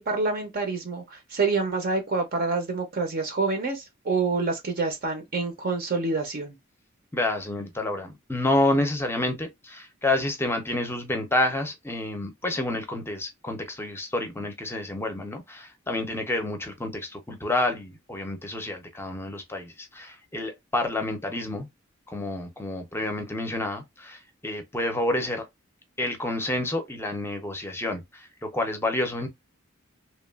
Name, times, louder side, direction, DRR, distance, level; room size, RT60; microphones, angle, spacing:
voice 1, 0.0-6.6, right 3 dB, 45° right, 0.6 m, -27 dB
voice 2, 7.1-21.7 22.1-25.5 26.0-29.3, left 2 dB, 10° left, 0.6 m, -29 dB
2.9 x 2.3 x 2.3 m
head